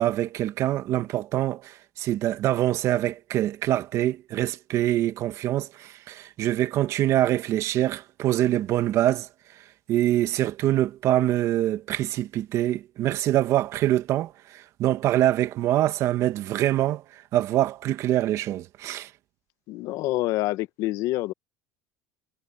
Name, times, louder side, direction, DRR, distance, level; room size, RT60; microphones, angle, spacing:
voice 1, 0.0-9.3 9.9-19.1, right 13 dB, 50° right, 1.7 m, -25 dB
voice 2, 19.7-21.3, left 17 dB, 60° left, 1.2 m, -27 dB
supercardioid pair, 125°, 6 cm